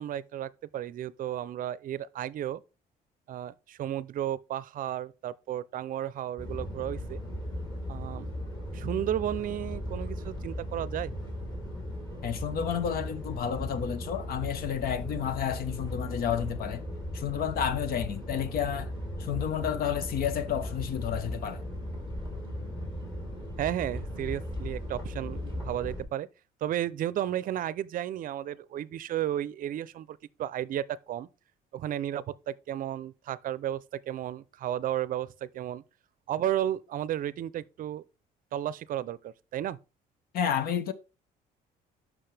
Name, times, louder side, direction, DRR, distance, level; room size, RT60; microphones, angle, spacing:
voice 1, 0.0-2.6 3.3-7.2 7.9-8.3 8.7-11.1 23.6-26.3 26.6-31.3 31.7-35.8 36.3-38.0 38.5-39.8, right 11 dB, 55° right, 0.5 m, -33 dB
sound 1, 6.4-26.0, left 1 dB, 25° left, 3.6 m, -37 dB
voice 2, 12.2-16.8 17.1-18.9 19.2-21.6 40.3-40.9, left 9 dB, 60° left, 0.9 m, -31 dB
7.8 x 6.1 x 3.3 m
cardioid pair, 110°, 17 cm